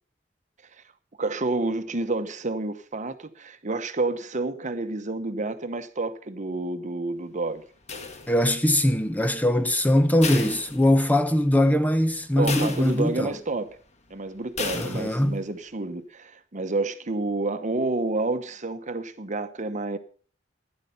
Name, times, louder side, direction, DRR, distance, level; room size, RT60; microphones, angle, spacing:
voice 1, 1.2-7.6 12.4-13.8 14.1-20.0, right 2 dB, 40° right, 1.0 m, -29 dB
sound 1, 7.9-8.7 10.2-11.4 11.7-11.8 12.5-13.4 14.6-15.4, left 4 dB, 35° left, 1.5 m, -34 dB
voice 2, 8.3-13.3 14.7-15.4, left 1 dB, 10° left, 0.7 m, -21 dB
12.0 x 10.5 x 5.5 m
head